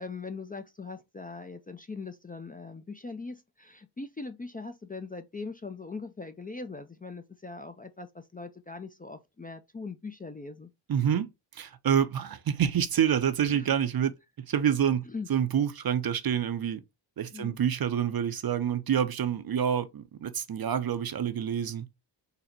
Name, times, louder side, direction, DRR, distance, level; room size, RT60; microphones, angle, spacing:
voice 1, 0.0-10.7 13.5-13.7 15.1-15.3 17.3-17.6, left 4 dB, 20° left, 0.4 m, -41 dB
voice 2, 10.9-14.1 14.4-15.0 15.3-16.8 17.2-21.9, right 8 dB, 50° right, 0.6 m, -27 dB
3.9 x 2.1 x 4.1 m
cardioid pair, 65°, 48 cm